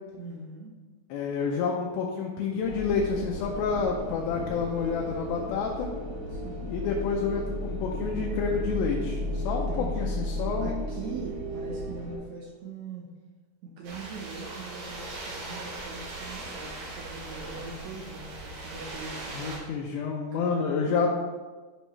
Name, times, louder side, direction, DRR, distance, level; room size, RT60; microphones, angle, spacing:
voice 1, 0.2-0.7 6.3-6.7 9.2-10.1 10.6-13.1 13.6-19.4 20.3-21.1, right 4 dB, 70° right, -2 dB, 1.8 m, -41 dB
voice 2, 1.1-5.9 6.7-10.8 19.3-21.1, left 5 dB, 85° left, 0 dB, 2.5 m, -29 dB
sound 1, 2.6-12.1, left 1 dB, 55° right, 0.9 m, -34 dB
sound 2, 13.8-19.6, right 2 dB, 85° right, 3.6 m, -39 dB
9.9 x 5.3 x 3.2 m, 1.3 s
omnidirectional pair, 4.2 m